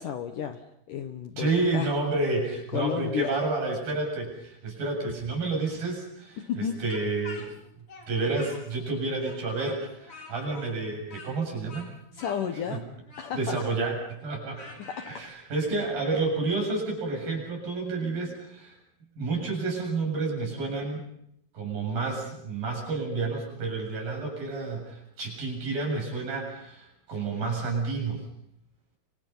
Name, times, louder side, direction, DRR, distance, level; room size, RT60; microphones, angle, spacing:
voice 1, 0.0-1.9 2.7-3.3 6.4-6.8 12.1-12.8 13.2-13.6 14.8-15.3, left 8 dB, 65° left, 7 dB, 2.3 m, -32 dB
voice 2, 1.4-7.5 8.1-11.9 12.7-12.8 13.4-14.0 14.2-14.7 15.1-18.8 19.2-21.0 21.5-28.3, right 3 dB, 55° right, 1 dB, 9.1 m, -30 dB
Speech, 6.9-8.9 9.2-15.2, left 2 dB, 35° left, 5.6 m, -47 dB
30.0 x 25.0 x 5.6 m, 0.73 s
omnidirectional pair, 4.9 m